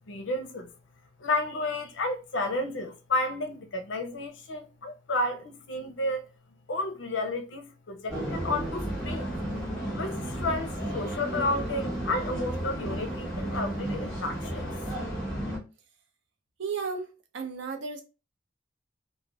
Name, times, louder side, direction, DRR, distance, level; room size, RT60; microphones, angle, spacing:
voice 1, 0.1-0.7 1.2-6.3 6.7-9.4 9.7-14.8, left 2 dB, 70° left, 0.6 m, -32 dB
sound 1, 8.1-15.6, right 1 dB, 5° left, 1.1 m, -33 dB
voice 2, 16.6-17.1 17.3-18.0, right 5 dB, 70° right, 0.5 m, -33 dB
2.5 x 2.1 x 3.3 m
head